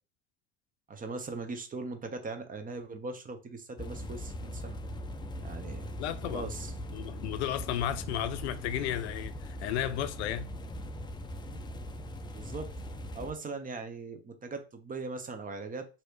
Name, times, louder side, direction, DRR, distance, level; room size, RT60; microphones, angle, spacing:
voice 1, 0.9-4.8 5.4-5.9 6.3-6.7 11.5-11.6 12.3-12.7 13.1-15.9, right 3 dB, 25° right, 0.7 m, -40 dB
sound 1, 3.8-13.3, equal, 15° left, 0.4 m, -40 dB
voice 2, 6.0-6.5 6.9-10.5, left 11 dB, 85° left, 0.5 m, -33 dB
3.1 x 2.7 x 2.9 m
hypercardioid pair, 80°, 33 cm